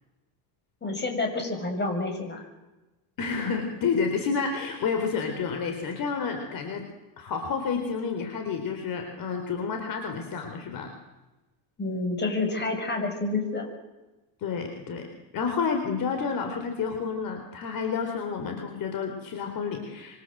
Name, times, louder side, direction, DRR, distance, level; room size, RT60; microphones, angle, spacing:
voice 1, 0.8-2.4 11.8-13.7, left 2 dB, 20° left, 4 dB, 7.2 m, -28 dB
voice 2, 3.2-6.8 7.2-10.9 14.4-15.1 15.3-20.2, left 5 dB, 40° left, 5 dB, 4.1 m, -30 dB
26.0 x 25.0 x 8.0 m, 1.1 s
supercardioid pair, 125°, 49 cm